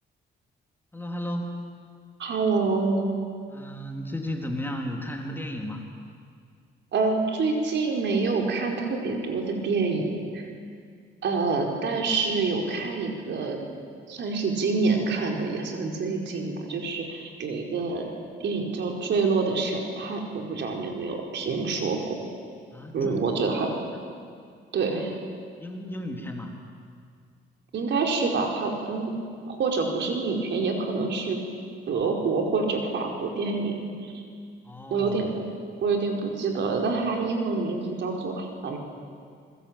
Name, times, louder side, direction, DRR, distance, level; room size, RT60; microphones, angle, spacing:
voice 1, 0.9-1.6 3.5-5.9 22.7-23.3 24.9-25.0 25.6-26.5 34.6-35.2, left 1 dB, 10° left, 1 dB, 3.8 m, -34 dB
voice 2, 2.2-3.0 6.9-10.5 11.2-13.6 14.1-18.1 18.4-22.1 22.9-23.7 24.7-25.1 27.7-29.1 29.5-31.4 31.9-34.2 34.9-35.3 35.8-38.8, right 4 dB, 65° right, 1 dB, 4.8 m, -27 dB
26.5 x 21.5 x 9.0 m, 2.2 s
cardioid pair, 90°, 20 cm